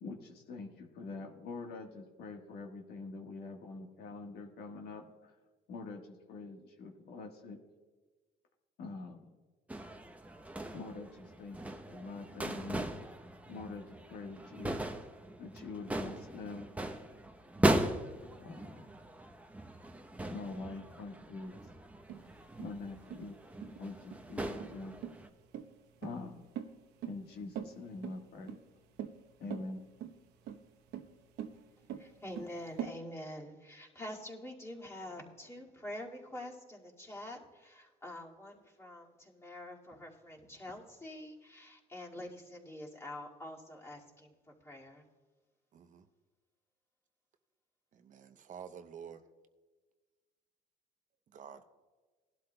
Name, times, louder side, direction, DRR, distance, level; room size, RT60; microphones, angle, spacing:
voice 1, 0.0-5.3 5.7-7.6 8.8-9.4 10.7-12.9 13.5-14.8 15.4-16.7 18.3-18.9 20.3-21.5 22.6-25.0 26.0-26.5 27.1-28.6 29.4-29.9, left 3 dB, 70° left, 2 dB, 1.4 m, -45 dB
sound 1, 9.7-25.3, right 1 dB, 10° right, 0.8 m, -38 dB
sound 2, 22.1-32.9, right 9 dB, 85° right, 0.9 m, -44 dB
voice 2, 32.0-44.3 44.6-45.0, left 1 dB, 15° left, -2 dB, 2.1 m, -46 dB
voice 3, 45.7-46.0 47.9-49.2 51.3-51.7, right 7 dB, 50° right, 8 dB, 0.8 m, -49 dB
19.5 x 12.0 x 2.2 m, 1.4 s
cardioid pair, 110°, 17 cm